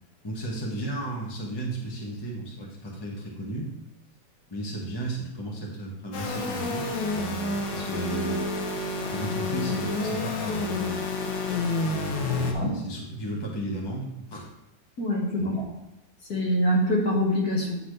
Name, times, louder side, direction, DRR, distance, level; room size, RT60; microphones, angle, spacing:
voice 1, 0.2-3.7 4.5-8.6 9.1-11.1 12.3-14.5 15.4-15.5, right 2 dB, 15° left, -3 dB, 1.0 m, -34 dB
sound 1, 6.1-12.5, left 3 dB, 75° left, 1.5 m, -29 dB
voice 2, 15.0-15.6 16.3-17.8, equal, 55° left, -3 dB, 2.0 m, -24 dB
9.8 x 4.1 x 3.2 m, 0.92 s
omnidirectional pair, 2.0 m